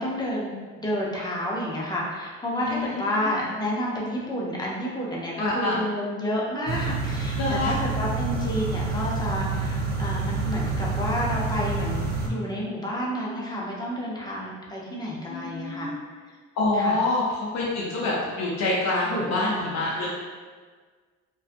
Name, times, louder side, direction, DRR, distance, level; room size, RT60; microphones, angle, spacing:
voice 1, 0.0-15.9 16.8-17.0 19.0-19.6 20.0-20.1, equal, 15° left, -4 dB, 0.6 m, -30 dB
voice 2, 2.6-3.4 5.4-5.8 7.4-7.8 15.3-16.0 16.5-20.1, left 2 dB, 65° left, -5 dB, 0.5 m, -26 dB
sound 1, 6.7-12.3, right 3 dB, 35° right, 0.4 m, -28 dB
2.6 x 2.2 x 2.5 m, 1.5 s
cardioid pair, 90°, 30 cm